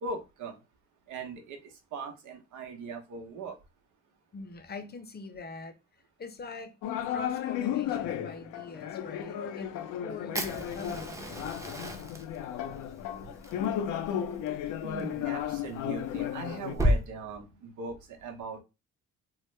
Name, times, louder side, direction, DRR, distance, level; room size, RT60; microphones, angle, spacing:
voice 1, 0.0-0.6 1.1-3.6 14.8-18.6, right 4 dB, 80° right, 0.9 m, -40 dB
voice 2, 4.3-5.8 6.2-11.4 17.5-17.8, left 3 dB, 35° left, 0.6 m, -44 dB
sound 1, 6.8-16.7, left 10 dB, 90° left, 0.5 m, -34 dB
Fire, 10.3-17.0, equal, 10° right, 0.6 m, -34 dB
3.1 x 2.1 x 3.2 m
cardioid pair, 90°, 30 cm